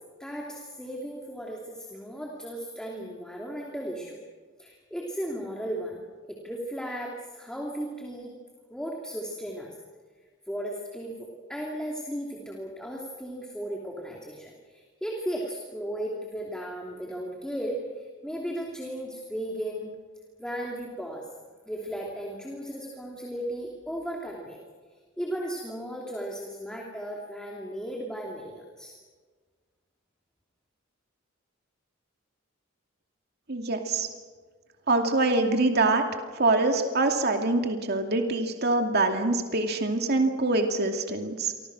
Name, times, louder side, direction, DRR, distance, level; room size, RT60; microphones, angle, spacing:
voice 1, 0.2-4.2 4.6-8.3 8.7-9.7 10.5-19.9 20.4-21.3 21.7-24.6 25.2-28.9, equal, 5° left, -1 dB, 2.9 m, -35 dB
voice 2, 33.5-34.1 34.9-36.0 36.3-41.5, right 2 dB, 55° right, 4 dB, 2.5 m, -24 dB
29.5 x 25.0 x 6.2 m, 1.5 s
head